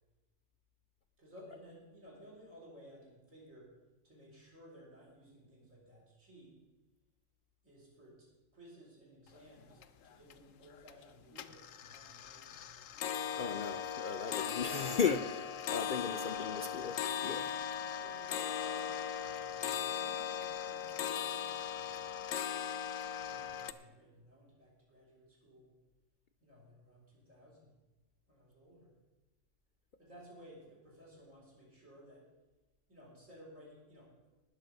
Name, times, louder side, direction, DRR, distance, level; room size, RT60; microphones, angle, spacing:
voice 1, 1.2-3.7 4.0-6.6 7.6-8.3 8.5-13.2 16.1-17.0 17.3-22.0 23.1-25.7 26.4-27.7 28.3-28.9 30.0-32.2 32.9-34.1, equal, 90° right, -4 dB, 5.0 m, -57 dB
sound 1, 9.3-9.4 9.7-10.3 10.7-11.1 11.3-23.7, left 8 dB, 85° left, 1.0 m, -38 dB
voice 2, 13.4-15.4 15.7-16.9 17.2-17.5, left 6 dB, 60° left, 7 dB, 0.5 m, -35 dB
19.0 x 6.7 x 5.2 m, 1.1 s
omnidirectional pair, 1.3 m